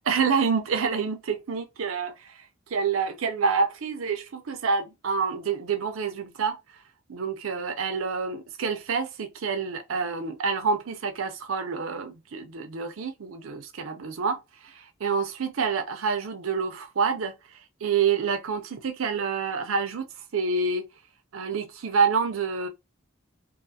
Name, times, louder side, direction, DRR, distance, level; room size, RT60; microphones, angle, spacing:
voice 1, 0.1-2.4 2.7-6.6 7.1-14.4 15.0-17.3 17.8-20.1 20.3-20.9 21.3-22.7, right 5 dB, 90° right, 0.5 m, -27 dB
2.5 x 2.4 x 2.6 m
head